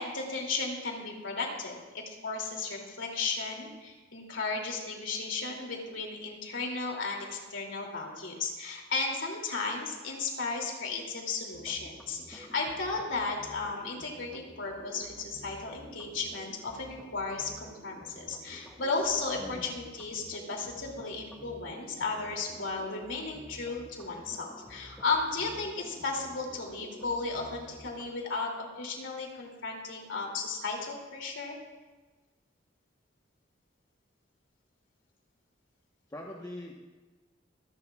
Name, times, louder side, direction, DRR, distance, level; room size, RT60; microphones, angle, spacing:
voice 1, 0.0-31.6, left 4 dB, 75° left, 0 dB, 2.7 m, -35 dB
sound 1, 11.5-28.0, equal, 5° left, 1.5 m, -51 dB
voice 2, 19.4-19.7 36.1-36.7, left 1 dB, 20° left, -2 dB, 1.1 m, -42 dB
24.5 x 11.0 x 2.4 m, 1.3 s
head